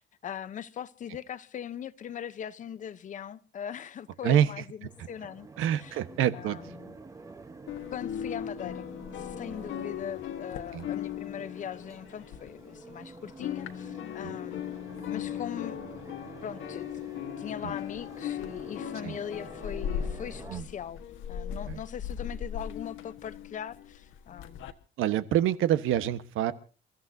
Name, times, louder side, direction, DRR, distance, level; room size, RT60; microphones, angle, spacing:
voice 1, 0.0-5.5 5.7-6.0 6.3-7.0 7.9-8.9 9.1-15.9 16.4-17.1 17.4-21.0 21.3-24.7, left 9 dB, 40° left, 0.8 m, -40 dB
sound 1, 4.8-20.6, right 3 dB, 15° right, 0.9 m, -48 dB
voice 2, 5.6-6.6 10.7-10.9 14.2-14.3 19.0-19.1 20.5-20.6 21.7-21.8 25.0-26.5, right 10 dB, 85° right, 1.2 m, -26 dB
sound 2, 7.7-13.0 13.3-24.7, left 9 dB, 70° left, 1.4 m, -38 dB
29.0 x 14.5 x 2.7 m
cardioid pair, 180°, 20 cm